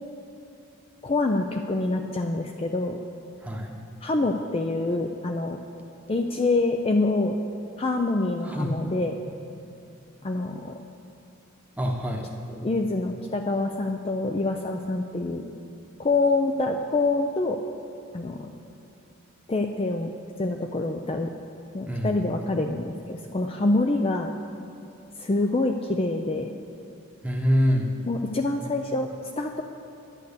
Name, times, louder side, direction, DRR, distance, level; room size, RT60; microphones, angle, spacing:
voice 1, 1.0-3.0 4.0-5.6 6.1-7.4 7.8-9.2 10.2-10.8 12.5-15.5 16.0-17.6 18.1-18.5 19.5-20.1 20.4-21.3 21.7-24.3 25.2-26.5 28.1-29.6, left 2 dB, 25° left, 4 dB, 0.4 m, -26 dB
voice 2, 8.4-8.7 11.8-12.3 21.9-22.2 27.2-27.9, equal, 5° right, 1 dB, 1.0 m, -25 dB
11.0 x 9.2 x 6.8 m, 2.6 s
head